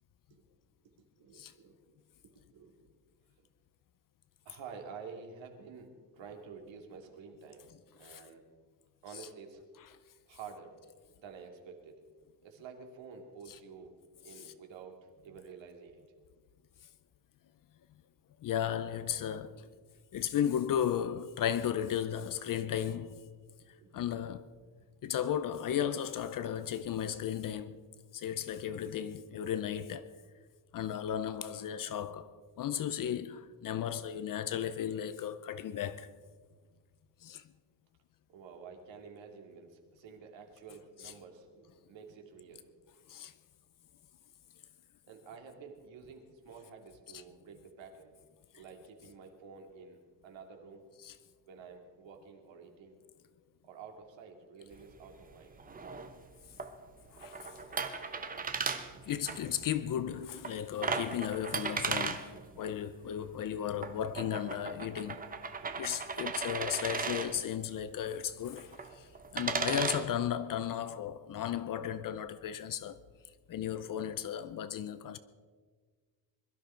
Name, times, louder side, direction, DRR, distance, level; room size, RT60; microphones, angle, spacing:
voice 1, 1.2-2.0 2.5-2.9 4.4-7.7 7.9-8.4 9.0-9.6 10.3-10.7 11.2-12.0 12.4-13.9 14.2-16.0 23.7-24.2 38.3-42.7 45.1-48.1 48.5-50.9 51.5-53.0 53.6-55.8 65.6-65.7, right 5 dB, 80° right, 2.6 m, -50 dB
voice 2, 18.4-19.6 20.1-23.2 23.9-24.5 25.0-27.8 28.1-30.1 30.7-36.1 37.2-37.5 41.0-41.1 43.1-43.3 47.1-47.2 51.0-51.1 57.1-57.6 57.9-58.1 59.1-65.3 65.8-73.0 73.5-75.2, left 9 dB, 50° left, 0.6 m, -35 dB
sound 1, 54.7-70.0, right 4 dB, 20° right, 0.8 m, -38 dB
22.0 x 13.0 x 4.5 m
cardioid pair, 175°, 44 cm